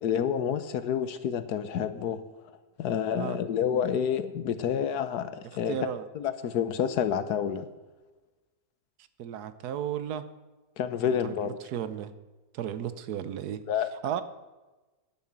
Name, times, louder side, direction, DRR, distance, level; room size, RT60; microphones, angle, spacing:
voice 1, 0.0-2.2 2.8-5.8 6.1-7.7 10.8-11.6 13.7-13.9, left 8 dB, 70° left, 12 dB, 1.3 m, -29 dB
voice 2, 5.7-6.0 9.2-10.2 11.0-12.1 12.5-13.6 14.0-14.2, right 9 dB, 70° right, 13 dB, 1.3 m, -34 dB
10.5 x 9.9 x 7.3 m, 1.2 s
omnidirectional pair, 1.8 m